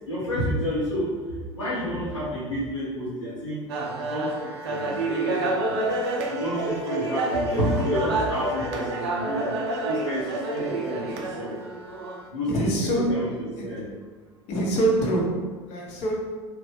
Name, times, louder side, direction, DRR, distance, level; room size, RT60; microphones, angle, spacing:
voice 1, 0.0-3.7 4.0-5.8 6.3-11.5 12.3-13.9, equal, 85° left, -10 dB, 0.8 m, -30 dB
sound 1, 3.7-12.3, right 2 dB, 70° right, 0.4 m, -28 dB
voice 2, 12.5-13.1 13.6-13.7 14.5-15.3 15.7-16.2, right 1 dB, 50° left, -2 dB, 0.7 m, -24 dB
3.1 x 2.2 x 3.2 m, 1.4 s
figure-of-eight pair, 75°, 15 cm